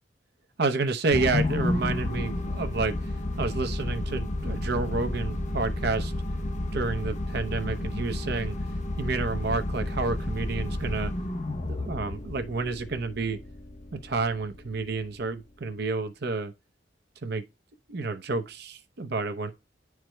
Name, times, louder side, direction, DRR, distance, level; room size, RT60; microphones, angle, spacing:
voice 1, 0.6-3.1 3.4-6.1 6.7-8.6 9.0-11.1 11.7-13.4 13.9-16.5 17.2-17.4 17.9-19.5, right 3 dB, 60° right, 0.8 m, -30 dB
sound 1, 1.1-15.6, left 1 dB, 40° left, 0.8 m, -31 dB
10.0 x 4.6 x 2.3 m
head